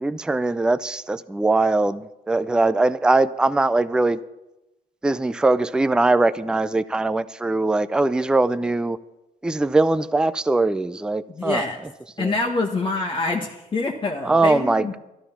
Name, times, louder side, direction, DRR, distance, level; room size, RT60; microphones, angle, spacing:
voice 1, 0.0-4.2 5.0-9.0 9.4-11.6 12.2-12.3 14.2-15.0, right 2 dB, 5° right, 15 dB, 0.4 m, -21 dB
voice 2, 11.3-11.8 12.2-15.0, left 3 dB, 30° left, 1 dB, 1.3 m, -25 dB
12.5 x 12.5 x 5.7 m, 0.96 s
cardioid pair, 110°, 17 cm